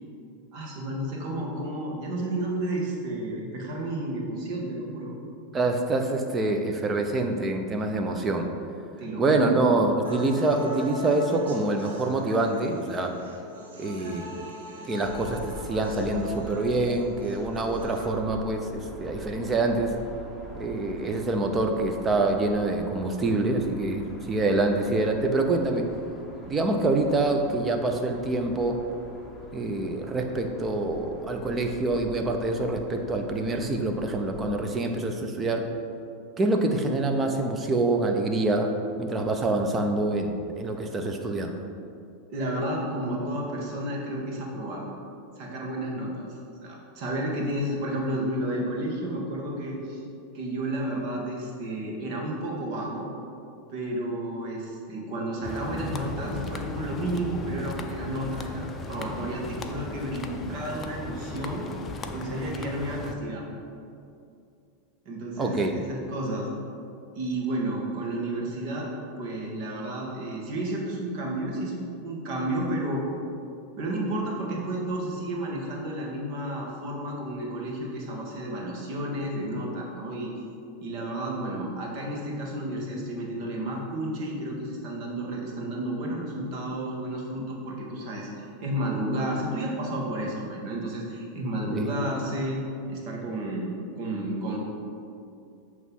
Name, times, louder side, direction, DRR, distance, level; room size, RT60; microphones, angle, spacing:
voice 1, 0.5-5.1 9.0-9.6 42.3-44.8 45.4-46.3 46.6-50.0 50.3-53.1 53.7-61.7 62.1-63.4 65.0-66.5 67.1-68.9 69.2-73.0 73.8-80.3 80.8-92.6 92.9-93.7 94.0-94.6, right 1 dB, 55° right, -1 dB, 1.6 m, -31 dB
voice 2, 5.5-8.5 9.2-13.2 13.8-14.3 14.9-19.9 20.6-25.8 26.5-28.8 29.5-35.7 36.4-38.7 39.0-41.6 65.4-65.7 91.7-91.9, right 2 dB, 20° right, 4 dB, 0.7 m, -26 dB
sound 1, 10.0-18.0, right 1 dB, 85° right, 1.2 m, -40 dB
sound 2, 15.0-34.6, left 1 dB, 5° left, 1.1 m, -44 dB
sound 3, 55.4-63.1, left 3 dB, 25° left, 0.5 m, -37 dB
8.0 x 3.2 x 5.4 m, 2.5 s
hypercardioid pair, 115°, 0 cm